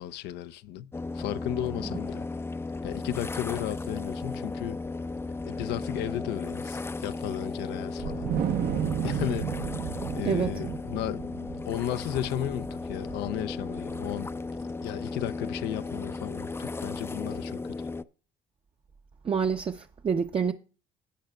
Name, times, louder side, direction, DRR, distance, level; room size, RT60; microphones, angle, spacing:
voice 1, 0.0-2.3 2.8-4.8 5.5-8.3 9.0-9.5 10.1-14.3 14.6-17.7, left 12 dB, 85° left, 0.6 m, -34 dB
sound 1, 0.9-18.0, left 3 dB, 15° left, 0.5 m, -35 dB
Wind, 8.0-14.5, right 8 dB, 65° right, 0.9 m, -33 dB
voice 2, 19.2-20.5, right 6 dB, 35° right, 0.7 m, -27 dB
17.0 x 8.8 x 2.3 m
cardioid pair, 110°, 17 cm